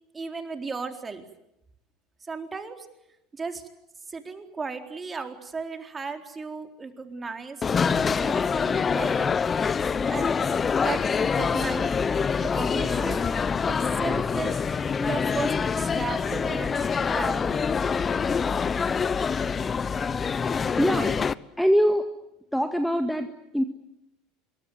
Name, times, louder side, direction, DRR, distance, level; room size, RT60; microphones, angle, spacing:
voice 1, 0.1-1.2 2.2-2.9 3.3-3.6 4.1-9.3 10.1-13.3 13.7-14.6 15.0-17.7, right 4 dB, 25° right, 5 dB, 4.1 m, -35 dB
sound 1, 7.6-21.3, left 6 dB, 30° left, 0.9 m, -25 dB
voice 2, 20.8-21.3 21.6-22.1 22.5-23.6, equal, ahead, 7 dB, 1.9 m, -23 dB
26.5 x 23.0 x 9.5 m, 0.86 s
hypercardioid pair, 75°, 0 cm